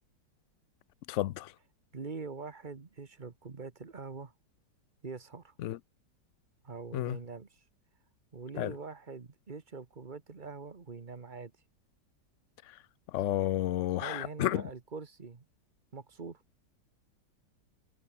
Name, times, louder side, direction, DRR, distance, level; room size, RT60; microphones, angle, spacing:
voice 1, 1.1-1.5 5.6-5.8 6.9-7.2 8.6-8.7 13.1-14.6, left 14 dB, 85° left, 0.6 m, -31 dB
voice 2, 1.9-4.3 5.0-5.5 6.6-7.6 8.3-11.5 14.0-15.4 15.9-16.4, right 4 dB, 30° right, 1.3 m, -43 dB
omnidirectional pair, 1.9 m